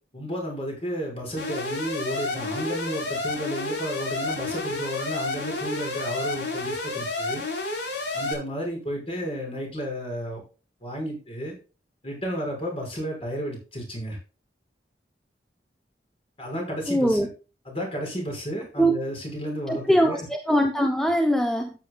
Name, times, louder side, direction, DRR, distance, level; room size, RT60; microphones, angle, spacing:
voice 1, 0.1-7.4 8.1-10.4 10.8-11.6 12.0-14.2 16.4-17.2 17.6-20.3, equal, 35° left, 6.0 m, -32 dB
Alarm, 1.4-8.3, left 2 dB, 80° left, 4.4 m, -30 dB
voice 2, 16.9-17.3 18.8-18.9 19.7-21.7, equal, 5° left, 0.9 m, -22 dB
13.5 x 9.3 x 2.4 m
head